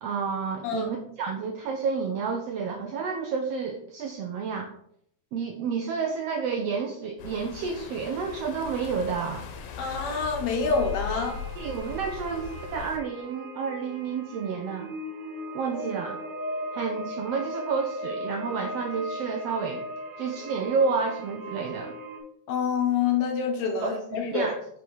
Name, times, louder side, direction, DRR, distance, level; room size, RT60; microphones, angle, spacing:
voice 1, 0.0-4.7 5.3-9.4 11.6-12.5 12.7-14.9 15.5-16.2 16.7-19.8 20.2-21.9 23.8-24.6, right 5 dB, 85° right, 3 dB, 1.4 m, -30 dB
sound 1, 7.2-13.0, left 6 dB, 90° left, 2.3 m, -39 dB
voice 2, 9.8-11.4 22.5-24.5, left 5 dB, 70° left, 2 dB, 1.9 m, -27 dB
sound 2, 10.6-22.2, equal, 65° right, 0.8 m, -38 dB
5.3 x 4.8 x 4.5 m, 0.69 s
omnidirectional pair, 3.5 m